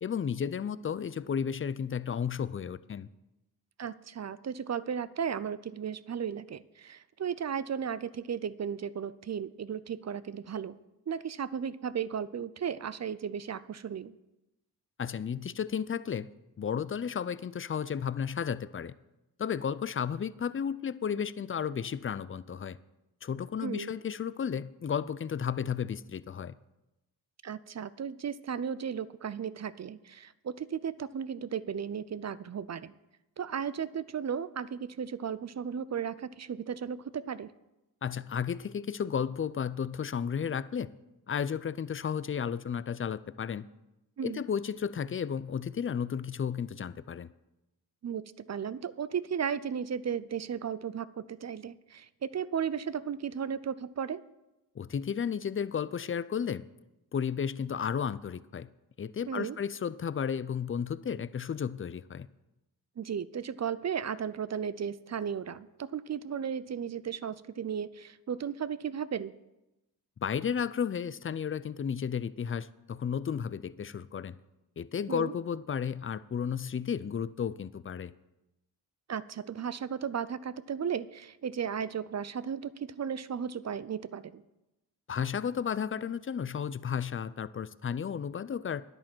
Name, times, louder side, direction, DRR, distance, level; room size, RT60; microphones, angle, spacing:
voice 1, 0.0-3.1 15.0-16.3 16.6-18.9 19.4-22.8 23.2-26.5 38.0-40.9 41.3-43.7 44.2-47.3 54.8-56.6 57.1-58.7 59.0-62.3 70.2-74.4 74.8-78.1 85.1-88.8, left 7 dB, 30° left, 17 dB, 0.5 m, -33 dB
voice 2, 3.8-10.8 11.1-14.1 23.6-24.0 27.4-32.9 33.4-37.5 44.2-44.4 48.0-54.2 59.3-59.6 63.0-69.3 75.1-75.3 79.1-84.4, right 7 dB, 40° right, 17 dB, 0.5 m, -35 dB
10.0 x 8.9 x 6.1 m, 0.97 s
cardioid pair, 55°, 42 cm